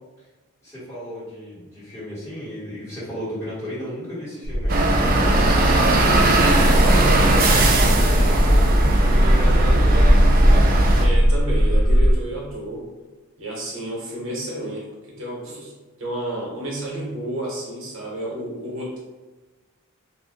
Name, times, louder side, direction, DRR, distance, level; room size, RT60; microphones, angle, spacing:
voice 1, 0.6-10.6, equal, 15° left, -12 dB, 1.5 m, -34 dB
sound 1, 4.4-12.1, equal, 70° left, 0.6 m, -18 dB
sound 2, 4.7-11.1, right 2 dB, 40° right, 0.3 m, -19 dB
voice 2, 8.1-8.7 11.0-12.9 13.4-15.7 16.0-19.0, right 1 dB, 60° right, -4 dB, 1.0 m, -31 dB
2.6 x 2.3 x 3.6 m, 1.2 s
head